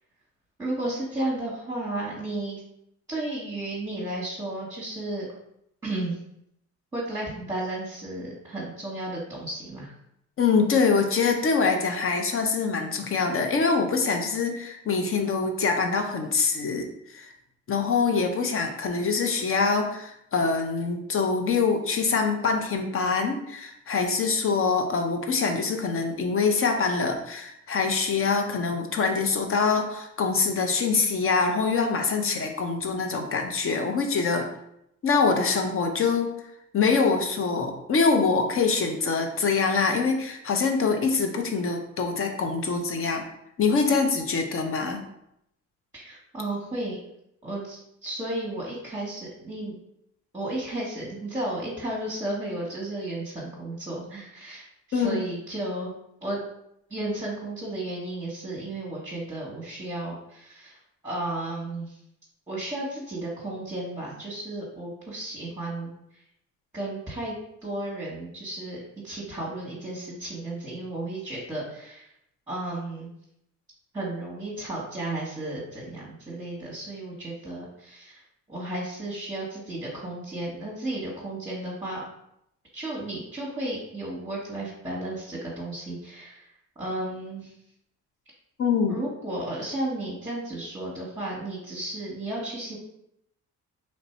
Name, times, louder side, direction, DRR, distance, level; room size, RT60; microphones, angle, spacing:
voice 1, 0.6-2.6 3.1-5.3 5.8-6.2 6.9-9.9 45.9-47.0 47.4-49.8 50.3-55.9 56.2-56.4 56.9-60.8 61.0-62.0 62.5-65.9 66.7-67.3 67.6-72.1 72.5-73.1 73.9-78.2 78.5-82.0 82.7-86.5 86.8-87.5 88.9-92.8, right 1 dB, 10° right, -7 dB, 1.2 m, -33 dB
voice 2, 10.4-17.3 17.7-34.5 35.0-36.3 36.7-43.2 43.6-45.0 54.9-55.2 88.6-89.0, left 4 dB, 45° left, 5 dB, 0.7 m, -24 dB
3.2 x 2.6 x 4.3 m, 0.77 s
cardioid pair, 90°, 30 cm